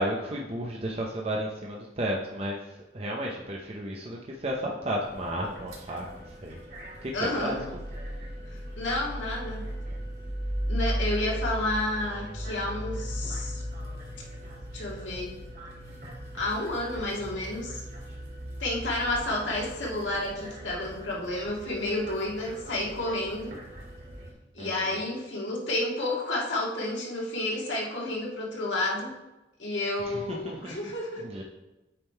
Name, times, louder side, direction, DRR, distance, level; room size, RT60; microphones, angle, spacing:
voice 1, 0.0-2.6 2.9-6.6 7.0-7.5 24.6-24.9 30.0-30.9 31.2-31.4, right 1 dB, 35° right, -1 dB, 0.7 m, -33 dB
sound 1, 5.0-24.3, equal, 55° right, 2.5 m, -37 dB
voice 2, 7.1-7.6 8.5-9.6 10.7-13.6 14.7-15.3 16.3-17.8 18.6-23.6 24.5-29.1 29.6-31.2, left 1 dB, 85° left, -2 dB, 1.8 m, -31 dB
8.7 x 3.7 x 4.5 m, 1.0 s
head